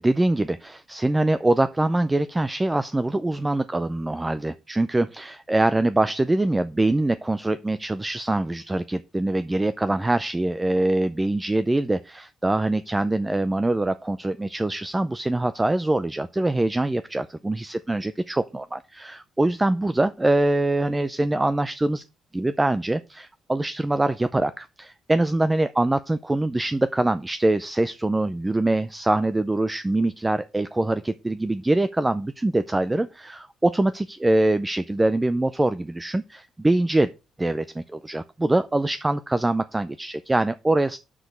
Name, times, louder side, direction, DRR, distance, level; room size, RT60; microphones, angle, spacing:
voice 1, 0.0-22.0 22.3-37.1 37.4-41.0, right 2 dB, 15° right, 0.4 m, -24 dB
6.1 x 5.2 x 5.7 m
cardioid pair, 90°, 0 cm